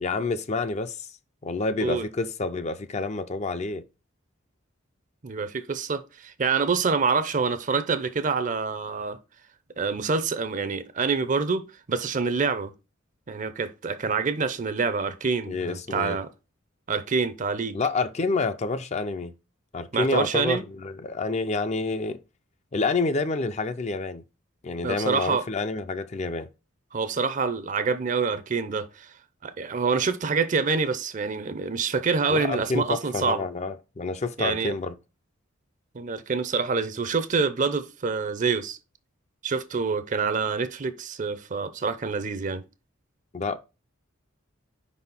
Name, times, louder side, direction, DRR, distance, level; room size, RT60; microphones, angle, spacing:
voice 1, 0.0-1.1 1.4-3.8 15.5-16.2 17.7-19.3 19.7-22.2 22.7-24.2 24.6-26.5 32.3-34.9 43.3-43.6, left 3 dB, 35° left, 0.4 m, -28 dB
voice 2, 5.2-9.2 9.8-12.7 13.3-16.3 16.9-17.8 19.9-20.6 24.8-25.5 26.9-29.1 29.4-33.4 34.4-34.8 35.9-38.8 39.4-42.6, right 5 dB, 40° right, 0.6 m, -26 dB
5.1 x 4.2 x 5.4 m
head